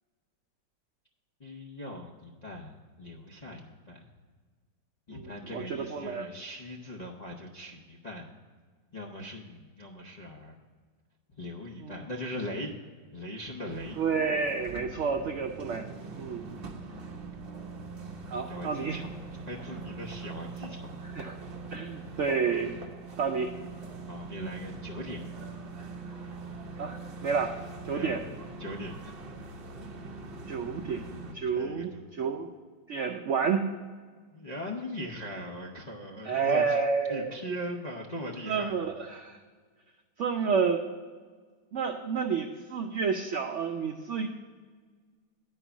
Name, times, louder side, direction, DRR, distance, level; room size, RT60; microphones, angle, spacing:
voice 1, 1.4-4.1 5.1-8.2 8.9-10.5 11.4-12.7 13.1-14.0 18.3-19.1 19.5-20.9 24.1-25.2 27.9-28.2 28.6-29.1 31.5-32.0 34.3-36.8 37.1-38.8, left 1 dB, 50° left, -4 dB, 0.5 m, -40 dB
voice 2, 5.1-6.3 11.8-12.0 14.0-15.9 16.2-16.4 18.3-19.0 21.1-21.4 21.7-22.7 23.2-23.5 26.8-27.6 27.8-28.2 30.5-31.0 31.3-32.5 32.9-33.7 36.2-37.4 38.5-39.4 40.2-40.8 41.7-44.3, right 5 dB, 80° right, 5 dB, 0.6 m, -30 dB
sound 1, 13.7-31.3, right 3 dB, 45° right, 0.8 m, -42 dB
10.0 x 4.6 x 7.0 m, 1.5 s
omnidirectional pair, 1.9 m